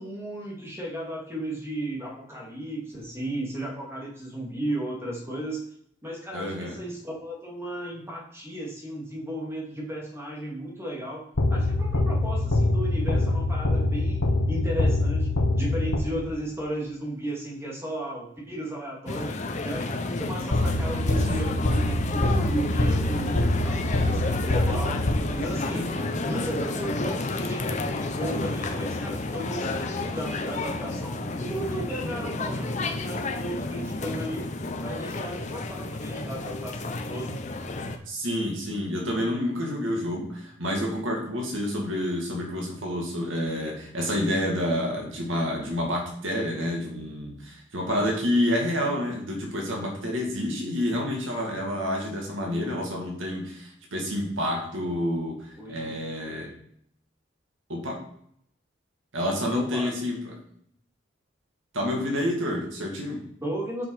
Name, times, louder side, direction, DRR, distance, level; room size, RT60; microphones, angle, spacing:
voice 1, 0.0-5.6 6.0-11.2 11.5-15.3 15.5-19.3 19.6-25.0 25.3-25.8 26.2-34.5 34.8-37.4 55.5-56.4 59.5-59.9 63.4-63.8, right 1 dB, 15° right, -3 dB, 2.3 m, -34 dB
voice 2, 6.3-6.8 21.1-21.6 25.7-26.1 38.1-56.5 57.7-58.1 59.1-60.4 61.7-63.3, left 1 dB, 80° right, 0 dB, 2.2 m, -29 dB
sound 1, 11.4-16.5 20.5-25.7, left 2 dB, 85° left, 1.1 m, -25 dB
sound 2, 19.1-38.0, left 2 dB, 35° left, 0.7 m, -31 dB
7.1 x 5.8 x 4.9 m, 0.68 s
head